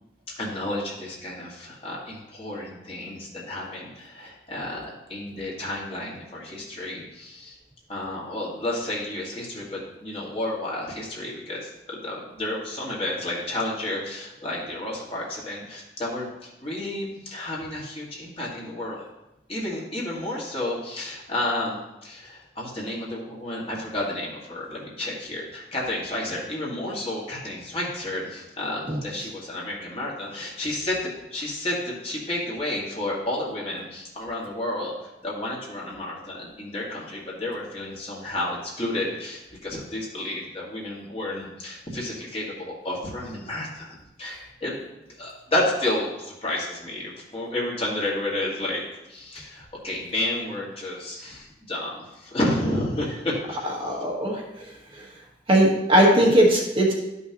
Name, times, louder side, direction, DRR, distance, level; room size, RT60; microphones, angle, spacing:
voice 1, 0.3-7.6 7.9-19.0 19.5-34.9 35.2-54.0, left 1 dB, 35° left, -4 dB, 1.8 m, -31 dB
voice 2, 53.8-55.1 55.5-56.9, right 1 dB, 30° right, -2 dB, 1.2 m, -20 dB
11.5 x 5.5 x 2.9 m, 0.93 s
head